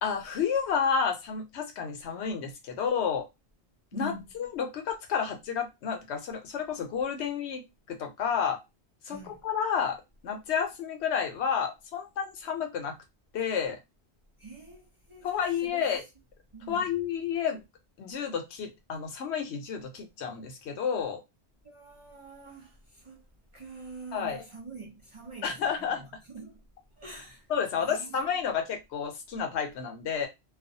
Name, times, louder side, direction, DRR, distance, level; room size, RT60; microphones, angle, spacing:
voice 1, 0.0-3.3 3.9-7.6 7.9-8.6 9.0-12.9 13.3-13.8 15.2-16.0 16.7-17.6 18.0-21.2 24.1-24.4 25.4-26.1 27.5-30.3, left 7 dB, 75° left, 0.9 m, -30 dB
voice 2, 3.9-4.2 9.0-9.4 14.4-15.3 15.6-15.9 16.5-16.9 21.6-23.3 23.5-26.6 27.0-27.5 27.8-28.5, right 3 dB, 35° right, 0.6 m, -45 dB
2.4 x 2.2 x 2.6 m
omnidirectional pair, 1.2 m